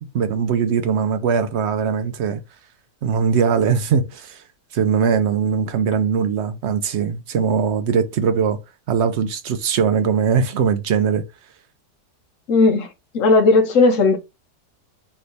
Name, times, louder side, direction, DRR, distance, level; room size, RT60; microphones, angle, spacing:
voice 1, 0.1-2.4 3.0-4.4 4.7-8.6 8.9-11.2, right 6 dB, 70° right, 0.6 m, -20 dB
voice 2, 12.5-14.2, left 3 dB, 55° left, 1.1 m, -16 dB
3.5 x 3.3 x 3.9 m
omnidirectional pair, 1.8 m